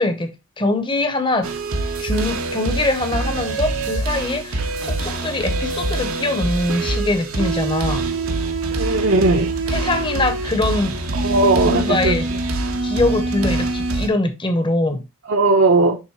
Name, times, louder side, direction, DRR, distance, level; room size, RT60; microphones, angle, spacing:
voice 1, 0.0-1.5 2.0-8.0 9.7-11.0 11.7-12.3 12.8-15.0, left 2 dB, 25° left, 0.9 m, -23 dB
sound 1, 1.4-14.1, right 2 dB, 90° right, 1.4 m, -24 dB
voice 2, 8.7-9.5 11.1-12.2 15.3-16.0, right 2 dB, 60° right, 0.9 m, -17 dB
10.5 x 3.7 x 3.0 m
head